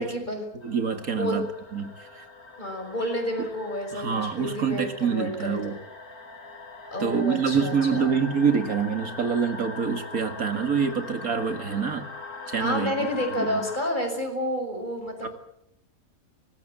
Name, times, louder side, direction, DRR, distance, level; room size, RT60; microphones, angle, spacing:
voice 1, 0.0-0.5 1.1-1.4 2.6-5.7 6.9-8.2 12.6-15.3, equal, 30° left, 3 dB, 6.2 m, -30 dB
sound 1, 0.6-13.9, left 3 dB, 90° left, 3.7 m, -41 dB
voice 2, 0.6-1.5 1.7-2.2 3.9-5.8 7.0-12.1 12.5-12.9 13.4-13.6 15.2-15.3, right 6 dB, 75° right, 7 dB, 2.5 m, -26 dB
24.5 x 19.5 x 7.5 m, 0.74 s
omnidirectional pair, 1.5 m